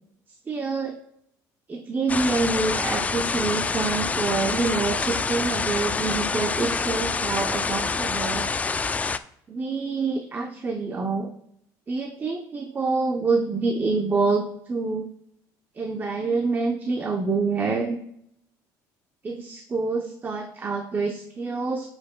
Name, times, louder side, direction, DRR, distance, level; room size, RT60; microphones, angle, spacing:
voice 1, 0.5-1.0 1.7-8.5 9.5-11.3 11.9-15.1 15.8-18.0 19.2-21.9, right 4 dB, 25° right, 4 dB, 0.7 m, -26 dB
sound 1, 2.1-9.2, left 4 dB, 20° left, 0.3 m, -26 dB
13.0 x 5.3 x 2.2 m, 0.73 s
cardioid pair, 110°, 8 cm